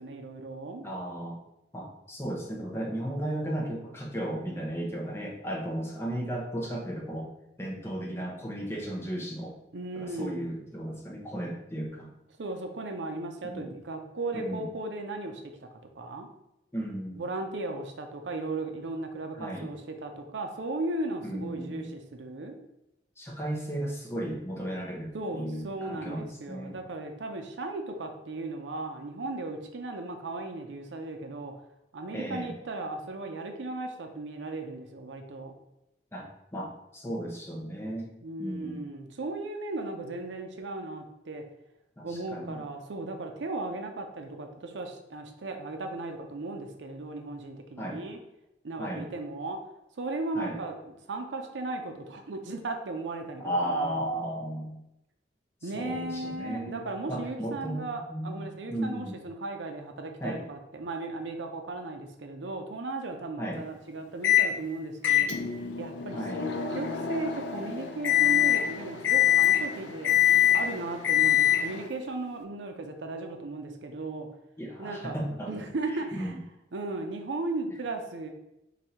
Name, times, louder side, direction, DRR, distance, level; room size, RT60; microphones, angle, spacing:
voice 1, 0.0-0.9 9.7-10.5 12.4-15.4 16.0-16.3 17.2-22.6 25.1-31.5 31.9-35.5 38.2-41.4 42.0-48.2 48.6-49.6 50.0-54.0 55.6-65.3 65.8-70.2 70.5-74.3 74.8-75.2 75.5-76.3 76.7-78.3, right 2 dB, 90° right, 5 dB, 0.6 m, -36 dB
voice 2, 0.8-1.4 1.7-7.3 7.6-9.5 10.0-12.1 13.4-13.7 14.3-14.7 16.7-17.2 19.3-19.7 21.2-21.9 23.2-26.8 32.1-32.6 36.1-38.1 38.4-38.8 42.0-42.6 47.8-48.0 48.8-49.1 50.3-50.6 53.4-54.8 55.6-59.2 60.2-60.4 63.4-63.6 66.1-66.5 74.6-75.5 76.1-76.4, right 1 dB, 15° left, -2 dB, 0.8 m, -35 dB
Microwave oven, 64.2-64.5 65.0-71.9, left 11 dB, 85° left, 0.5 m, -24 dB
4.0 x 2.7 x 4.3 m, 0.87 s
head